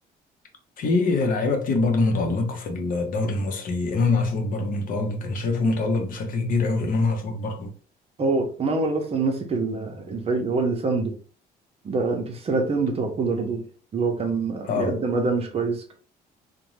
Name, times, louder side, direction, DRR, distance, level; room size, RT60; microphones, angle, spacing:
voice 1, 0.8-7.7 14.7-15.0, left 3 dB, 55° left, 0.7 m, -24 dB
voice 2, 8.2-11.1 11.8-13.6 13.9-15.9, right 3 dB, 35° right, 0.7 m, -25 dB
2.6 x 2.1 x 3.0 m
cardioid pair, 110°, 17 cm